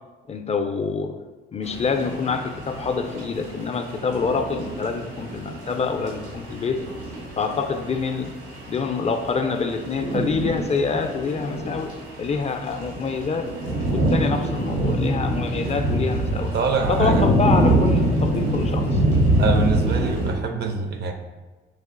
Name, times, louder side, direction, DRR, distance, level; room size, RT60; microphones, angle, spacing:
voice 1, 0.3-1.2 1.5-6.8 7.4-8.3 8.7-11.9 12.2-13.5 13.9-16.5 16.9-19.0, left 4 dB, 35° left, 6 dB, 0.4 m, -26 dB
sound 1, 1.6-20.3, right 1 dB, 80° right, 1.2 m, -25 dB
voice 2, 16.5-17.2 19.4-21.1, right 4 dB, 55° right, 5 dB, 0.6 m, -24 dB
4.6 x 2.4 x 3.7 m, 1.3 s
cardioid pair, 90°, 20 cm